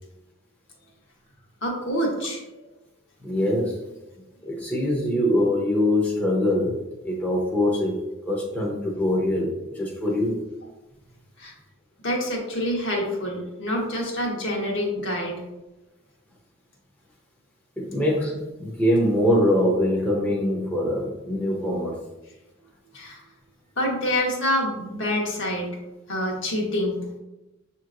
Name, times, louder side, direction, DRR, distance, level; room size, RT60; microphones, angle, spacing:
voice 1, 1.6-2.4 11.4-11.5 12.0-15.4 22.9-23.2 23.8-25.7 26.1-27.0, left 1 dB, 65° left, -1 dB, 1.1 m, -26 dB
voice 2, 3.2-3.8 4.4-10.4 17.8-21.9, left 1 dB, 10° left, -4 dB, 0.7 m, -23 dB
6.7 x 2.9 x 2.5 m, 0.98 s
head